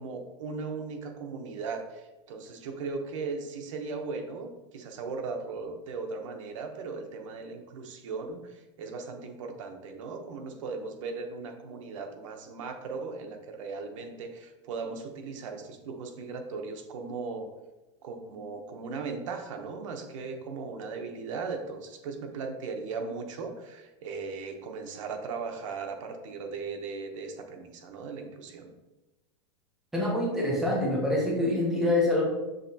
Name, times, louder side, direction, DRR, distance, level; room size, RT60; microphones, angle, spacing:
voice 1, 0.0-17.5 18.0-28.7, right 4 dB, 85° right, 4 dB, 0.8 m, -38 dB
voice 2, 29.9-32.2, left 1 dB, 5° right, -4 dB, 0.7 m, -25 dB
6.5 x 3.0 x 2.7 m, 1.1 s
supercardioid pair, 170°, 16 cm